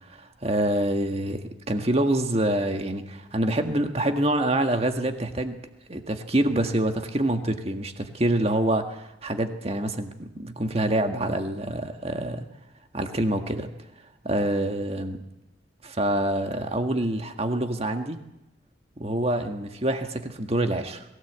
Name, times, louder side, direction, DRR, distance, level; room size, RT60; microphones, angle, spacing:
voice 1, 0.1-5.6 5.9-12.4 12.9-13.7 14.2-15.2 15.8-18.2 19.0-21.1, right 1 dB, 30° right, 6 dB, 1.7 m, -26 dB
21.5 x 16.5 x 8.2 m, 0.93 s
head